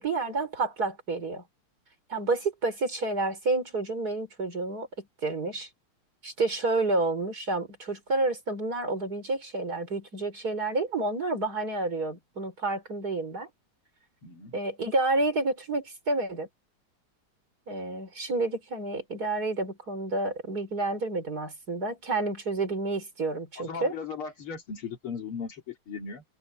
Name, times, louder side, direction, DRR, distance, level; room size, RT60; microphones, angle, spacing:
voice 1, 0.0-1.4 2.1-5.7 6.2-13.5 14.5-16.5 17.7-23.9, right 2 dB, 45° right, 5.1 m, -29 dB
voice 2, 14.2-14.5 23.7-26.2, left 5 dB, 75° left, 3.4 m, -37 dB
omnidirectional pair, 2.4 m